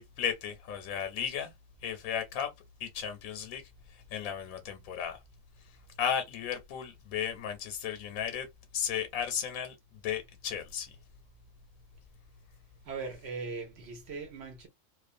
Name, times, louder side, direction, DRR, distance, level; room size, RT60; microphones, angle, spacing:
voice 1, 0.0-1.5 1.8-2.5 2.8-5.2 5.6-8.5 8.7-11.0, left 8 dB, 85° left, 1.1 m, -35 dB
voice 2, 12.9-14.7, right 4 dB, 60° right, 0.8 m, -39 dB
2.4 x 2.3 x 2.5 m
omnidirectional pair, 1.4 m